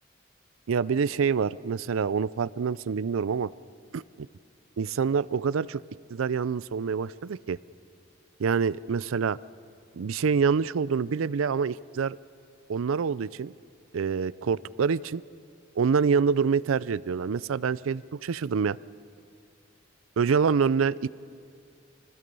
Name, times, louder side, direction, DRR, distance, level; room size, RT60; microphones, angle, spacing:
voice 1, 0.7-3.5 3.9-4.0 4.8-5.8 6.1-7.6 8.4-9.4 10.0-12.2 12.7-13.5 13.9-15.2 15.8-18.8 20.2-21.1, right 6 dB, 90° right, 20 dB, 0.4 m, -26 dB
27.0 x 20.0 x 5.4 m, 2.3 s
head